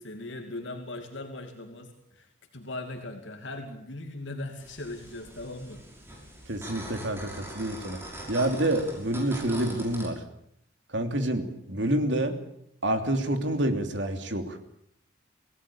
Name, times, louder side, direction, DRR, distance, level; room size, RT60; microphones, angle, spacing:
voice 1, 0.0-5.8, left 2 dB, 75° left, 4 dB, 2.6 m, -39 dB
sound 1, 4.6-10.1, equal, 15° right, 6.0 m, -42 dB
voice 2, 6.5-8.0 8.3-10.2 10.9-12.4 12.8-14.6, right 1 dB, 70° right, 6 dB, 3.0 m, -28 dB
25.5 x 17.5 x 8.6 m, 0.72 s
head